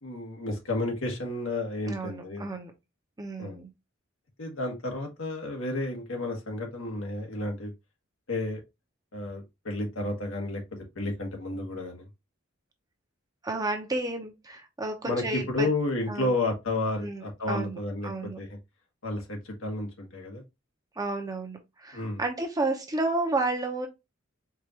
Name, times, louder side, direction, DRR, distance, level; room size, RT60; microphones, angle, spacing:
voice 1, 0.0-2.5 3.4-3.6 4.4-7.7 8.3-8.6 9.1-10.6 10.9-12.0 15.0-18.1 18.4-18.5 19.0-20.4 21.9-22.2, left 2 dB, 80° left, 1.5 m, -31 dB
voice 2, 1.8-2.7 3.2-3.7 13.4-15.7 16.1-16.3 17.0-18.4 21.0-23.9, right 2 dB, 20° right, 0.8 m, -31 dB
4.7 x 2.5 x 2.9 m
head